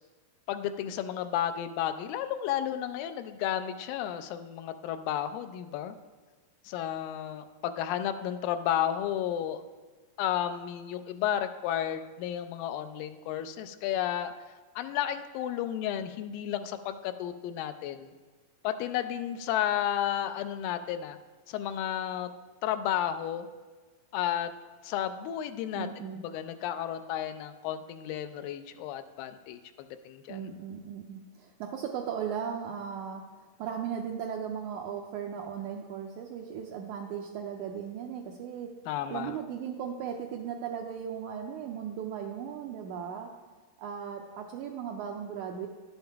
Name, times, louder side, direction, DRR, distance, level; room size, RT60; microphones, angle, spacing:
voice 1, 0.5-5.9 6.7-9.6 10.2-14.3 14.8-18.1 18.6-21.2 21.5-22.3 22.6-23.5 24.1-24.5 24.8-25.9 26.2-30.5 38.9-39.4, left 10 dB, 85° left, 9 dB, 2.3 m, -32 dB
voice 2, 25.8-26.2 30.3-33.2 33.6-38.7 39.1-43.3 43.8-45.7, right 8 dB, 80° right, 2 dB, 1.7 m, -37 dB
11.5 x 7.2 x 3.4 m, 1.3 s
omnidirectional pair, 4.0 m